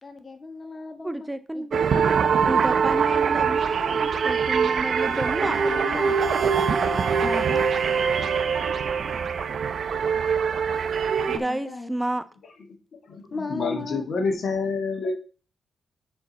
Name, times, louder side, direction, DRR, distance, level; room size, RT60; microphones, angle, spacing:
voice 1, 0.0-1.3 1.5-3.4 3.9-4.0 4.5-6.1 7.5-7.7 11.3-11.9 13.3-14.1, left 3 dB, 35° left, 5 dB, 1.5 m, -37 dB
voice 2, 1.0-1.8 2.4-5.6 7.2-7.5 11.2-12.2, right 1 dB, 10° right, 12 dB, 0.4 m, -31 dB
sound 1, 1.7-11.4, right 6 dB, 65° right, 0.7 m, -23 dB
voice 3, 13.0-15.1, left 4 dB, 65° left, 4 dB, 1.6 m, -28 dB
6.9 x 4.6 x 4.0 m, 0.37 s
cardioid pair, 65°, 0 cm